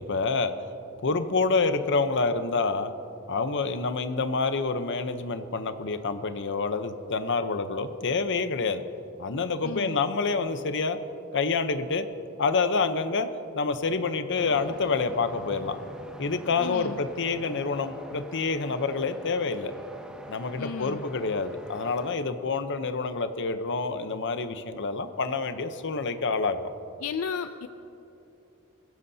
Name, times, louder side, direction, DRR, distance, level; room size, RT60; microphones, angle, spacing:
voice 1, 0.1-0.5 1.0-2.9 3.3-8.8 9.2-11.0 11.3-12.1 12.4-13.3 13.5-15.8 16.2-19.7 20.3-26.7, left 4 dB, 55° left, 9 dB, 0.8 m, -27 dB
voice 2, 9.6-10.0 16.6-17.0 20.6-21.0 27.0-27.7, left 6 dB, 75° left, 9 dB, 0.4 m, -34 dB
sound 1, 14.4-22.2, equal, 5° right, 0.9 m, -44 dB
24.0 x 15.5 x 2.8 m, 2.9 s
head